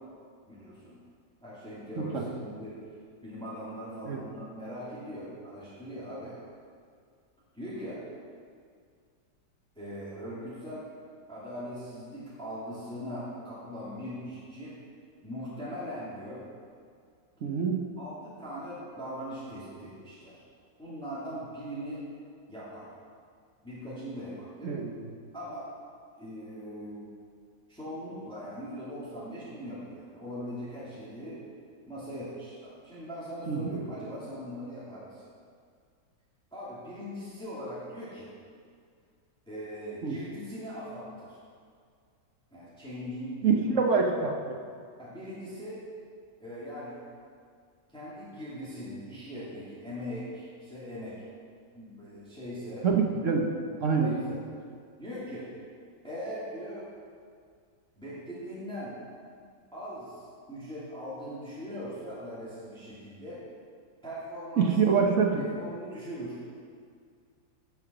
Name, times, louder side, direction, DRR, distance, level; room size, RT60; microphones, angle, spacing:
voice 1, 0.5-1.0 1.4-2.8 3.2-6.4 7.5-8.0 9.7-10.9 11.3-14.7 15.2-16.4 18.0-20.4 20.8-22.0 22.5-22.9 23.6-24.7 25.3-25.7 26.2-27.0 27.7-31.4 31.9-35.3 36.5-38.3 39.5-41.4 42.5-43.6 44.0-44.1 45.0-45.8 46.4-47.0 47.9-51.2 51.7-52.9 54.0-54.4 55.0-55.5 56.0-56.8 58.0-59.0 59.7-63.4 64.0-65.1 65.4-66.4, equal, 5° left, -10 dB, 2.5 m, -40 dB
voice 2, 2.0-2.4 4.0-4.2 17.4-17.8 24.6-24.9 33.5-33.7 40.0-40.1 43.4-44.6 52.8-53.5 53.8-54.1 64.6-65.4, right 5 dB, 55° right, 1 dB, 1.0 m, -25 dB
9.6 x 5.8 x 6.7 m, 2.2 s
omnidirectional pair, 2.0 m